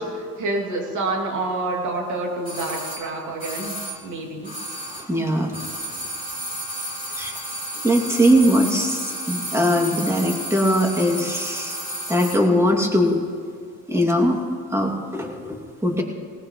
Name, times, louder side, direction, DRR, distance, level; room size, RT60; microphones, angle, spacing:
voice 1, 0.0-4.5, right 2 dB, 75° right, 0 dB, 3.0 m, -28 dB
sound 1, 2.4-5.2 5.5-12.5 12.7-12.8, right 1 dB, 25° right, 3.3 m, -32 dB
voice 2, 5.1-5.5 7.1-7.4 7.8-11.8 12.1-13.2 13.9-14.4 14.7-16.0, equal, 10° right, 0 dB, 2.7 m, -20 dB
19.0 x 18.5 x 3.2 m, 2.3 s
cardioid pair, 90°, 30 cm